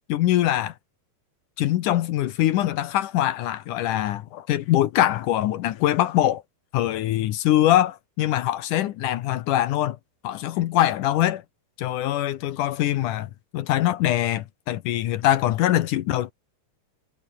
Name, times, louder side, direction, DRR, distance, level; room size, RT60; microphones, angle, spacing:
voice 1, 0.1-0.7 1.6-6.4 6.7-10.0 10.2-11.4 11.8-16.3, left 13 dB, 70° left, 2.1 m, -23 dB
omnidirectional pair, 4.5 m